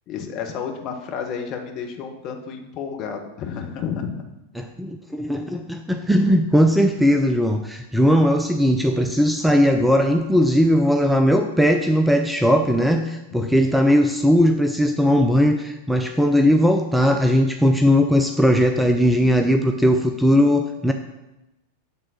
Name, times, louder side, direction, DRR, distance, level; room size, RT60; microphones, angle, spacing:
voice 1, 0.1-4.3 13.4-13.7, left 6 dB, 35° left, 3 dB, 1.1 m, -31 dB
voice 2, 4.5-20.9, equal, ahead, 5 dB, 0.5 m, -18 dB
8.3 x 3.7 x 6.2 m, 0.96 s
figure-of-eight pair, 90°, 0 cm